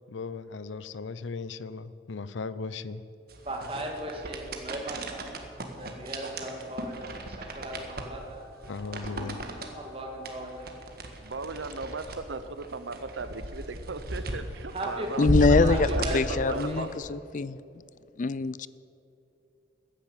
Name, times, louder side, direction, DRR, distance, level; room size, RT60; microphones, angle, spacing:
voice 1, 0.0-3.0 8.7-9.4, left 4 dB, 90° left, 16 dB, 0.6 m, -37 dB
sound 1, 3.3-17.0, right 1 dB, 55° right, 1.7 m, -34 dB
voice 2, 3.4-5.3 5.8-8.4 9.8-10.7 14.7-15.1 15.7-16.9, right 1 dB, 30° right, 1 dB, 2.2 m, -37 dB
sound 2, 5.2-10.8, left 2 dB, ahead, 2.3 m, -54 dB
voice 3, 11.2-16.9, right 3 dB, 80° right, 11 dB, 0.8 m, -37 dB
voice 4, 15.2-15.9 16.1-17.6 18.2-18.7, left 4 dB, 45° left, 18 dB, 0.4 m, -24 dB
14.5 x 10.0 x 9.0 m, 2.7 s
head